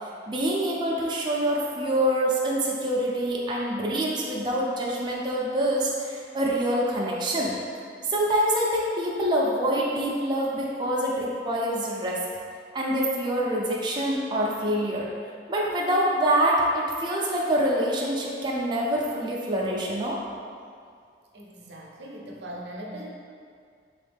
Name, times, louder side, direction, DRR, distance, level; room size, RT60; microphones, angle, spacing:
voice 1, 0.3-7.6 8.1-12.2 12.7-15.1 15.5-20.2, right 1 dB, 25° right, -4 dB, 0.4 m, -25 dB
voice 2, 21.3-23.1, right 1 dB, 85° right, -2 dB, 0.6 m, -40 dB
3.5 x 3.1 x 3.3 m, 2.2 s
head